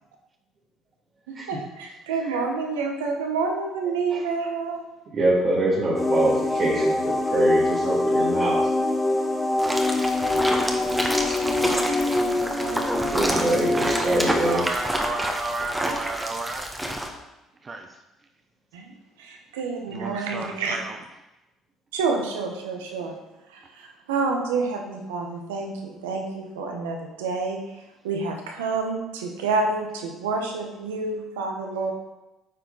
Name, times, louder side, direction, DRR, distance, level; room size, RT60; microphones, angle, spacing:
voice 1, 1.5-4.8 18.7-18.9 19.2-20.8 21.9-23.1 23.5-27.6 28.0-31.9, right 4 dB, 85° right, 2 dB, 1.1 m, -28 dB
voice 2, 5.1-8.7 13.1-14.9, right 2 dB, 55° right, -6 dB, 1.8 m, -25 dB
sound 1, 5.9-14.5, left 2 dB, 20° left, 1.3 m, -24 dB
sound 2, 9.6-17.1, equal, 10° right, 1.2 m, -28 dB
voice 3, 14.4-16.7 17.6-18.0 19.9-21.0, right 3 dB, 35° right, 5 dB, 0.6 m, -32 dB
8.9 x 4.7 x 3.9 m, 0.98 s
hypercardioid pair, 60°, 0 cm